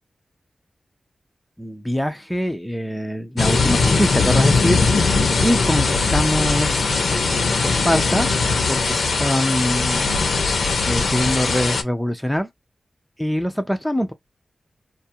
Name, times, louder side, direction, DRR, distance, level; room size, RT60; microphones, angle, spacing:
voice 1, 1.6-4.8 5.4-6.9 7.6-8.3 8.7-10.2 10.9-12.5 13.2-14.1, equal, 5° left, 0.4 m, -23 dB
sound 1, 3.4-11.8, left 4 dB, 70° left, 0.6 m, -20 dB
2.4 x 2.3 x 2.6 m
wide cardioid pair, 165°, 0 cm